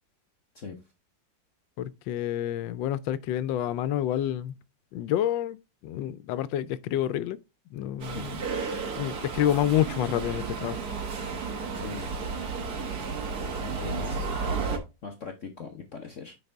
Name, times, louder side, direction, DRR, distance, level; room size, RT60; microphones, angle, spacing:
voice 1, 1.8-4.6 4.9-5.6 5.8-7.4 7.7-8.4 8.9-10.8, left 11 dB, 90° left, 1.3 m, -28 dB
Subway metro underground, 8.0-14.8, right 4 dB, 60° right, 1.7 m, -32 dB
voice 2, 11.7-12.1 13.0-13.1 13.6-14.3 15.0-16.3, left 4 dB, 50° left, 1.0 m, -40 dB
9.5 x 4.2 x 3.4 m
omnidirectional pair, 2.0 m